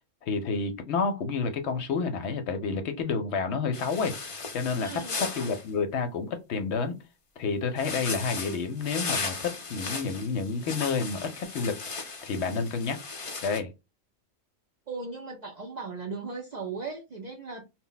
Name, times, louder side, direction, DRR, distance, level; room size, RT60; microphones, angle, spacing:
voice 1, 0.2-7.0 7.4-12.0 12.2-13.0 13.4-13.7, left 4 dB, 65° left, 0.8 m, -30 dB
sound 1, 3.7-5.6 7.8-13.6, left 4 dB, 45° left, 0.4 m, -36 dB
voice 2, 4.8-5.2 14.9-17.6, right 4 dB, 55° right, 0.5 m, -37 dB
2.2 x 2.1 x 3.8 m
omnidirectional pair, 1.3 m